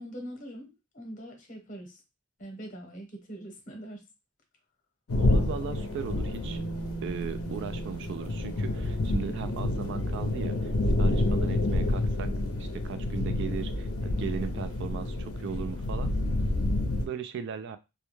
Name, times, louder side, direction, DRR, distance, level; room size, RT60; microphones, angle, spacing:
voice 1, 0.0-2.0 2.4-4.1 11.4-11.6, right 1 dB, 35° left, 3 dB, 0.8 m, -42 dB
sound 1, 5.1-17.1, left 2 dB, 85° left, 0.5 m, -29 dB
voice 2, 5.2-6.6 7.0-10.7 11.0-12.3 12.6-16.1 17.0-17.8, right 6 dB, 60° right, 10 dB, 0.3 m, -37 dB
Bass guitar, 6.4-12.5, right 4 dB, 30° right, 0.6 m, -42 dB
2.3 x 2.1 x 3.0 m, 0.25 s
head